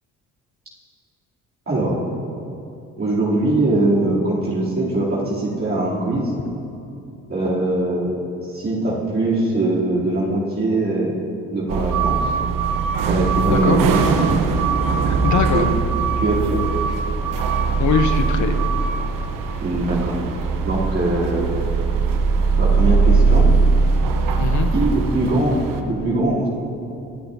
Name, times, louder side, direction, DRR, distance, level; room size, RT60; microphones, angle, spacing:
voice 1, 1.7-2.0 3.0-6.3 7.3-8.2 8.5-11.1 11.5-12.2 13.1-13.9 15.3-15.7 16.2-16.6 19.6-20.2 20.6-21.5 22.6-23.6 24.7-26.5, right 2 dB, 40° right, -8 dB, 3.2 m, -21 dB
sound 1, 11.7-25.8, right 4 dB, 70° right, 1.0 m, -20 dB
voice 2, 13.5-13.8 15.1-15.6 17.8-18.6 24.4-24.7, left 7 dB, 55° left, 8 dB, 1.0 m, -21 dB
22.0 x 8.7 x 2.8 m, 2.7 s
supercardioid pair, 65°, 34 cm